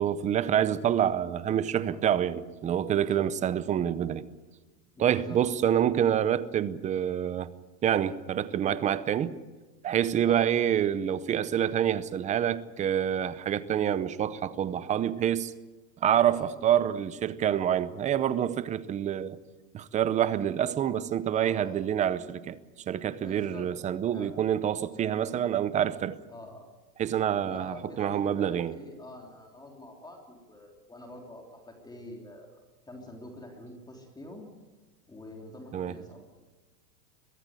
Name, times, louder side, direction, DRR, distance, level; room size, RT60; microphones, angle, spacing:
voice 1, 0.0-4.2 5.0-7.5 7.8-9.4 9.8-15.5 16.0-19.4 19.7-22.6 22.9-26.2 27.0-28.8 35.7-36.0, right 10 dB, 15° right, 0.6 m, -27 dB
voice 2, 5.0-5.4 10.2-10.7 13.7-14.0 16.3-16.5 21.3-21.8 23.1-23.7 24.1-24.3 26.3-26.7 27.4-32.5 32.9-34.5 35.1-36.2, left 1 dB, 10° left, 3.3 m, -46 dB
23.0 x 15.5 x 9.7 m
supercardioid pair, 145°, 49 cm